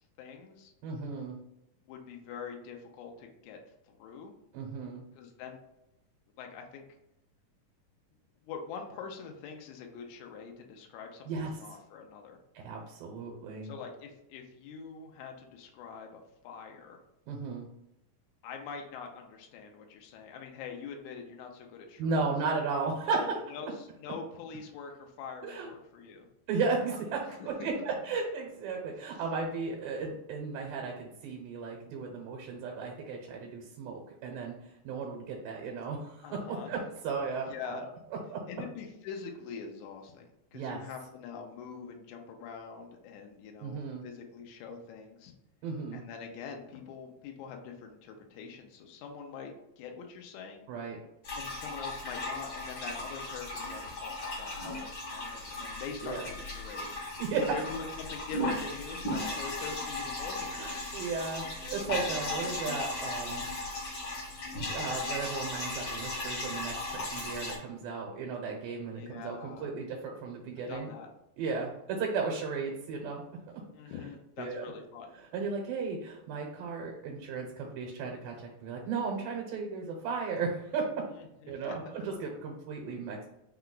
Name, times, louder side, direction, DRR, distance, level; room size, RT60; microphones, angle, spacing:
voice 1, 0.2-0.7 1.8-3.6 3.8-4.3 5.1-5.6 6.4-6.8 8.4-12.4 13.6-17.0 18.4-22.3 23.1-26.3 27.2-27.7 36.2-36.8 37.4-37.8 38.5-45.3 45.9-50.7 51.3-56.9 57.5-60.8 68.9-69.7 70.7-71.1 73.7-75.1 81.1-81.8, left 5 dB, 85° left, 3 dB, 1.7 m, -44 dB
voice 2, 0.8-1.4 4.5-5.0 11.3-11.6 12.5-13.7 17.3-17.7 22.0-23.2 25.4-25.7 26.5-36.8 37.0-37.8 38.3-38.4 40.5-40.8 43.6-44.0 45.6-46.0 50.7-51.0 56.0-56.2 57.2-57.4 59.2-59.4 60.5-63.8 64.5-70.9 71.4-73.2 74.4-74.7 75.3-81.1 81.5-83.3, right 4 dB, 85° right, 0 dB, 2.5 m, -35 dB
sound 1, 51.2-67.6, left 2 dB, 55° left, 1.2 m, -36 dB
5.5 x 2.3 x 3.7 m, 0.86 s
omnidirectional pair, 4.1 m